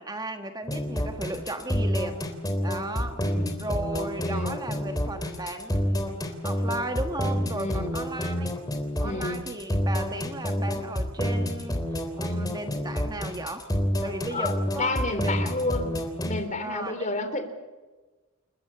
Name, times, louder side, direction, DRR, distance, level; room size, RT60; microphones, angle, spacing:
voice 1, 0.0-2.2 2.6-3.2 3.6-6.0 6.4-8.5 9.0-11.8 12.2-13.7 14.0-15.5 16.6-17.1, right 2 dB, 20° right, 6 dB, 1.4 m, -35 dB
sound 1, 0.7-16.4, equal, 20° left, 3.4 m, -28 dB
voice 2, 3.1-3.6 3.9-4.5 7.5-7.9 9.0-9.4 14.3-16.0 16.2-17.5, left 2 dB, 35° left, 9 dB, 3.3 m, -31 dB
29.0 x 14.5 x 8.6 m, 1.2 s
head